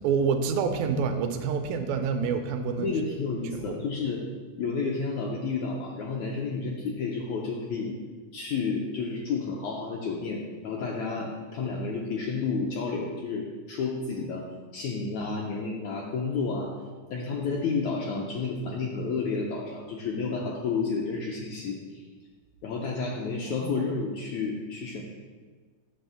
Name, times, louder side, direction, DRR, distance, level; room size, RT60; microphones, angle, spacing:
voice 1, 0.0-2.9 3.5-3.8 23.5-23.8, right 6 dB, 80° right, 7 dB, 2.3 m, -27 dB
voice 2, 2.8-4.2 4.6-8.0 8.3-14.5 14.7-16.7 17.1-22.0 22.6-25.0, left 4 dB, 80° left, -2 dB, 1.7 m, -31 dB
9.2 x 3.5 x 6.9 m, 1.4 s
omnidirectional pair, 4.2 m